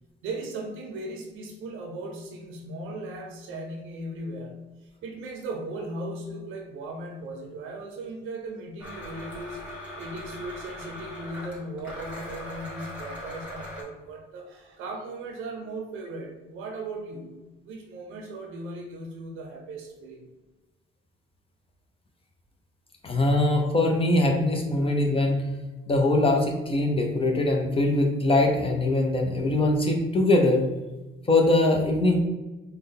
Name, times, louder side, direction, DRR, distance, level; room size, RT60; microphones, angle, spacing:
voice 1, 0.2-4.6 5.0-9.7 10.0-17.4 17.6-20.2, right 2 dB, 85° right, 2 dB, 0.6 m, -37 dB
Domestic sounds home sounds, 8.8-13.8, left 1 dB, 5° right, 1.4 m, -40 dB
voice 2, 23.0-25.5 25.9-30.6 31.3-32.2, left 2 dB, 30° left, 1 dB, 0.6 m, -22 dB
3.8 x 2.2 x 3.5 m, 1.1 s
cardioid pair, 90°, 20 cm